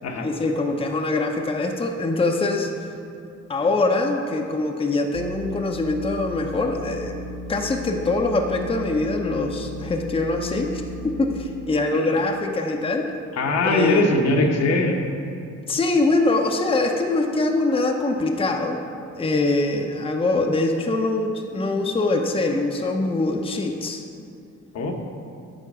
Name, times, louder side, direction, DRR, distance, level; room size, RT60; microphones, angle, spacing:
voice 1, 0.2-2.7 3.5-7.2 7.5-13.1 13.6-14.1 15.7-18.8 19.2-24.0, left 2 dB, 20° left, 2 dB, 0.7 m, -23 dB
sound 1, 5.1-11.6, equal, 85° right, 2.1 m, -36 dB
voice 2, 13.4-15.0 24.7-24.9, left 2 dB, 60° left, 2 dB, 1.0 m, -21 dB
9.1 x 4.5 x 6.1 m, 2.5 s
cardioid pair, 90°, 30 cm